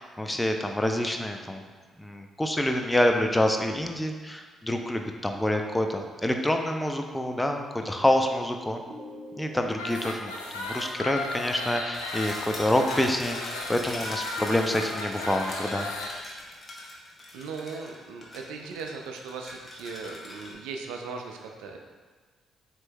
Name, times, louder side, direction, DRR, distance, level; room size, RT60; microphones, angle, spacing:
voice 1, 0.0-1.6 2.0-8.8 9.4-15.9, left 1 dB, 10° left, 4 dB, 0.5 m, -27 dB
voice 2, 7.8-8.2 17.3-21.8, right 4 dB, 70° right, 3 dB, 0.4 m, -38 dB
sound 1, 8.9-12.0 14.4-15.8, left 2 dB, 15° right, 1.1 m, -47 dB
sound 2, 9.7-16.1, left 2 dB, 80° left, 0.4 m, -35 dB
sound 3, 11.9-20.6, left 1 dB, 30° left, 0.9 m, -41 dB
7.5 x 2.9 x 2.2 m, 1.4 s
figure-of-eight pair, 40°, 0 cm